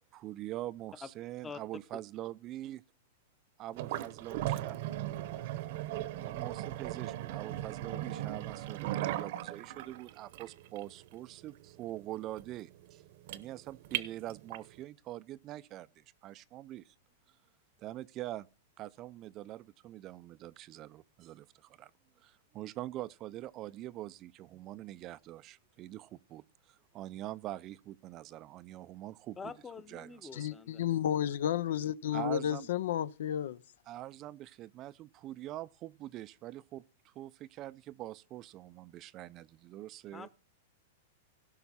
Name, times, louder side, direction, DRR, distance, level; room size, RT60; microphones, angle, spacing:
voice 1, 0.0-2.8 3.6-4.7 6.2-13.0 13.3-16.9 17.3-17.4 17.8-18.5 18.8-21.9 22.2-29.5 29.9-30.5 32.1-32.7 33.9-40.3, right 14 dB, 30° right, 0.4 m, -44 dB
sound 1, 3.7-14.8, right 14 dB, 55° right, 0.9 m, -38 dB
voice 2, 29.4-30.8 40.1-40.4, left 5 dB, 10° left, 0.8 m, -46 dB
voice 3, 30.3-33.6, left 10 dB, 75° left, 0.5 m, -32 dB
17.0 x 5.7 x 4.2 m
supercardioid pair, 150°, 0 cm